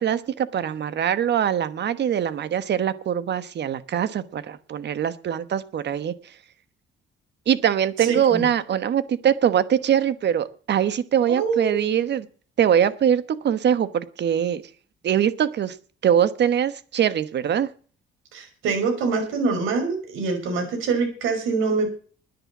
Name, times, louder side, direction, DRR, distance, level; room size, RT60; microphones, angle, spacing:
voice 1, 0.0-6.1 7.5-12.3 12.6-14.6 15.0-15.8 16.0-17.7, right 9 dB, 60° right, 16 dB, 1.2 m, -22 dB
voice 2, 8.0-8.5 11.3-11.9 18.3-21.9, right 4 dB, 90° right, 5 dB, 5.4 m, -25 dB
10.0 x 10.0 x 7.2 m, 0.42 s
cardioid pair, 90°, 20 cm